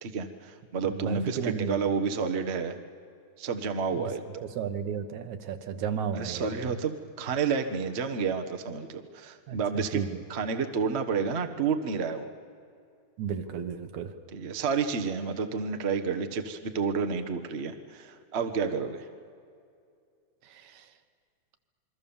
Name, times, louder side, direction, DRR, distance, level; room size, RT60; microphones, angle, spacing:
voice 1, 0.0-2.8 3.4-4.2 6.1-10.0 10.3-12.3 14.3-19.1, right 5 dB, 55° right, 7 dB, 0.7 m, -30 dB
voice 2, 0.8-1.8 4.0-4.1 4.5-6.8 9.5-9.6 9.9-10.2 13.2-14.1 20.5-20.8, right 7 dB, 75° right, 8 dB, 2.6 m, -33 dB
27.5 x 22.5 x 7.2 m, 2.4 s
omnidirectional pair, 3.4 m